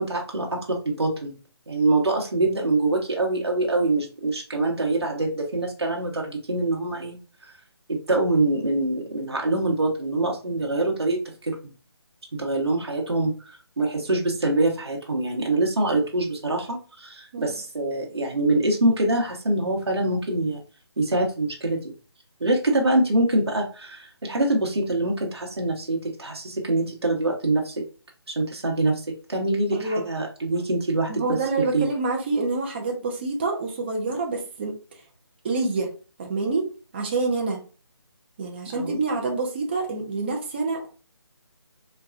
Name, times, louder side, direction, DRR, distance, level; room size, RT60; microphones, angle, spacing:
voice 1, 0.0-1.4 1.7-7.5 7.9-11.6 12.4-13.5 13.8-20.6 21.0-21.9 22.4-27.8 28.3-29.0 29.3-31.2 31.6-31.9 38.7-39.0, right 2 dB, 70° right, 0 dB, 1.0 m, -24 dB
voice 2, 31.1-34.7 35.4-35.9 36.2-37.6 38.4-40.9, right 3 dB, 25° right, 1 dB, 0.6 m, -27 dB
4.0 x 2.3 x 2.5 m, 0.36 s
figure-of-eight pair, 155°, 14 cm